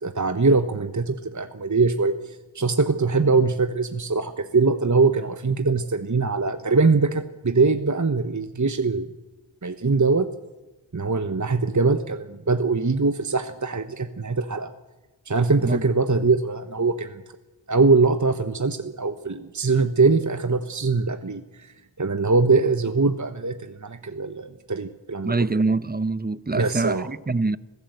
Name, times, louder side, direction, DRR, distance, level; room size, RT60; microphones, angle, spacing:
voice 1, 0.0-9.1 9.6-10.3 10.9-14.7 15.3-17.2 17.7-21.4 22.0-25.3 26.5-27.1, right 4 dB, 40° right, 1.1 m, -22 dB
voice 2, 25.2-27.6, right 3 dB, 20° right, 0.7 m, -24 dB
25.5 x 16.0 x 8.0 m
wide cardioid pair, 45°, 47 cm